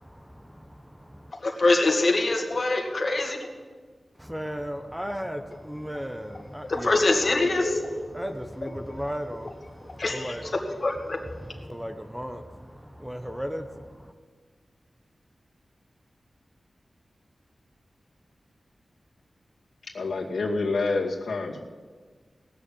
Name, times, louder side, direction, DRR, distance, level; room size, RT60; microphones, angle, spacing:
voice 1, 0.0-1.3 4.1-7.7 8.0-10.6 11.3-14.1, equal, 5° right, 0.9 m, -36 dB
voice 2, 1.4-3.5 6.7-8.1 10.0-10.3 10.8-11.2 11.5-11.6, left 2 dB, 45° left, 2.1 m, -24 dB
voice 3, 19.9-21.6, left 3 dB, 85° left, 2.2 m, -27 dB
18.0 x 7.0 x 8.6 m
wide cardioid pair, 105°, 0 cm